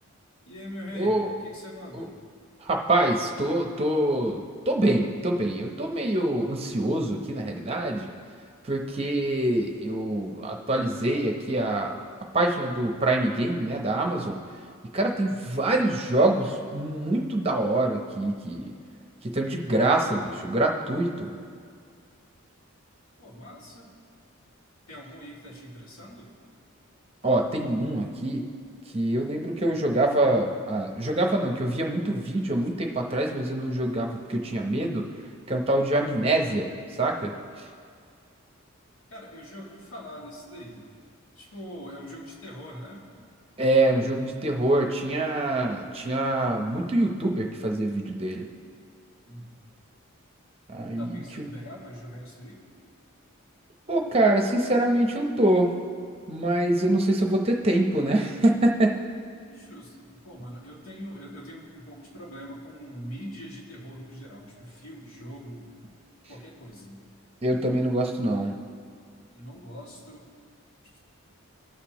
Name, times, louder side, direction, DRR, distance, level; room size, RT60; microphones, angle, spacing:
voice 1, 0.4-2.1 23.2-23.9 24.9-26.3 39.1-40.9 41.4-43.1 49.3-49.6 50.7-52.7 59.4-65.7 66.3-67.0 69.3-70.3 70.9-71.0, equal, 70° left, -4 dB, 2.2 m, -42 dB
voice 2, 1.0-1.3 1.9-2.0 2.6-8.1 8.6-12.0 12.3-14.4 14.9-18.7 19.2-21.3 27.2-28.5 28.9-35.0 35.5-36.7 37.0-37.7 43.6-48.4 50.7-51.5 53.9-55.7 56.3-59.0 67.4-68.5, right 1 dB, 25° right, 2 dB, 0.8 m, -25 dB
19.0 x 6.7 x 3.0 m, 2.2 s
head